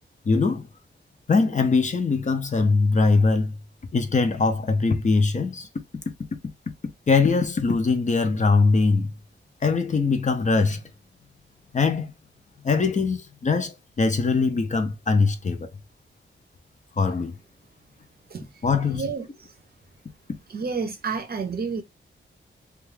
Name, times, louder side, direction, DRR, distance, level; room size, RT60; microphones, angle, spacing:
voice 1, 0.3-0.7 1.3-3.5 3.9-5.7 7.1-9.1 9.6-10.8 11.7-12.1 12.6-15.7 17.0-17.3 18.6-19.1, left 4 dB, 40° left, 0.5 m, -21 dB
voice 2, 18.9-19.3 20.5-21.8, right 5 dB, 50° right, 0.6 m, -29 dB
2.3 x 2.3 x 3.2 m
wide cardioid pair, 100°, 20 cm